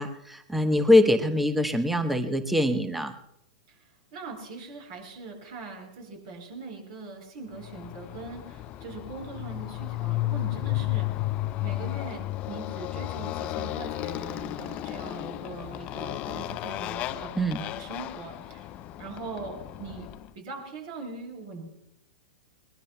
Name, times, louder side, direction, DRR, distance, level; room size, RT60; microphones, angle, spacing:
voice 1, 0.0-3.2 17.4-17.6, left 1 dB, 5° right, 9 dB, 1.0 m, -23 dB
voice 2, 3.7-11.3 11.6-20.1 20.3-21.7, right 3 dB, 55° right, 1 dB, 7.6 m, -41 dB
Motorcycle, 7.6-20.3, left 16 dB, 35° left, 0.6 m, -33 dB
22.5 x 21.0 x 2.3 m, 0.81 s
hypercardioid pair, 105°, 3 cm